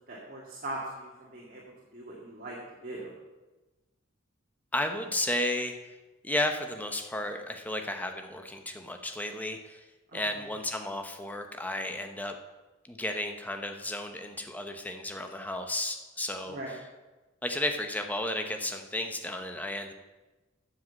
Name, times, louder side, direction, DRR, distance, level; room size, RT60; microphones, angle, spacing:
voice 1, 0.0-1.6 1.9-2.6 2.8-3.1 10.1-10.4 16.5-16.7, right 1 dB, 40° right, -4 dB, 2.0 m, -40 dB
voice 2, 4.7-5.7 6.2-9.9 10.1-12.3 12.8-16.8 17.4-19.9, left 1 dB, 10° left, 5 dB, 0.9 m, -33 dB
9.2 x 7.6 x 7.6 m, 1.2 s
head